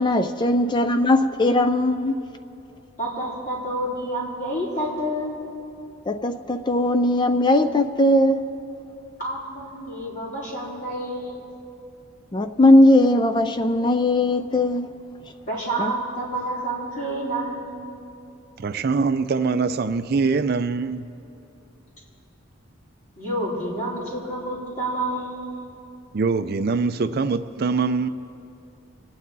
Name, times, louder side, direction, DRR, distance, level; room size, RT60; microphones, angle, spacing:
voice 1, 0.0-2.2 6.1-8.4 12.3-14.9 15.8-15.9, left 1 dB, 20° left, 0.4 m, -19 dB
voice 2, 3.0-5.3 9.2-11.4 15.5-17.8 23.2-25.5, right 1 dB, 40° left, 4.2 m, -29 dB
voice 3, 18.6-21.0 26.1-28.1, right 4 dB, 50° right, 0.4 m, -23 dB
26.0 x 9.6 x 4.0 m
head